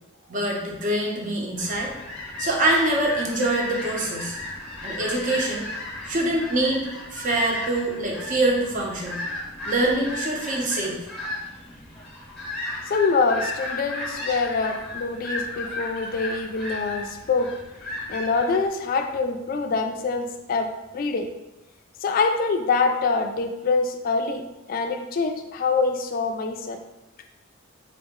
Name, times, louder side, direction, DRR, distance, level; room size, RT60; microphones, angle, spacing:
voice 1, 0.3-1.9 2.4-4.4 4.8-5.7 6.1-9.2 9.6-11.0, right 1 dB, 40° right, -1 dB, 0.6 m, -24 dB
sound 1, 1.6-18.7, left 2 dB, 5° left, 0.8 m, -35 dB
voice 2, 12.9-17.5 18.1-21.3 22.0-24.4 24.7-26.8, left 4 dB, 45° left, 5 dB, 0.3 m, -25 dB
3.7 x 2.1 x 3.5 m, 0.97 s
head